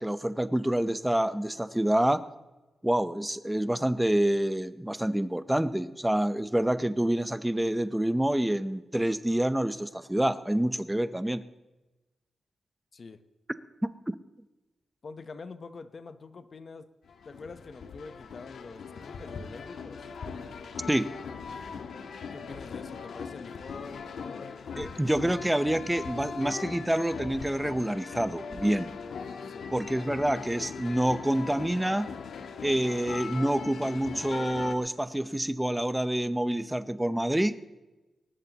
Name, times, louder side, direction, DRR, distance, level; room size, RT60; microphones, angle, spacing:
voice 1, 0.0-2.2 2.8-11.4 13.8-14.2 20.9-21.1 24.8-28.9 29.7-32.1 32.6-37.6, right 1 dB, 5° right, 12 dB, 0.7 m, -27 dB
voice 2, 15.0-16.9 17.2-20.1 22.3-24.5 29.4-29.7, left 4 dB, 45° left, 10 dB, 0.9 m, -45 dB
sound 1, 17.1-34.7, left 5 dB, 80° left, 1.4 m, -40 dB
20.5 x 19.0 x 3.0 m, 1.1 s
wide cardioid pair, 120°, 0 cm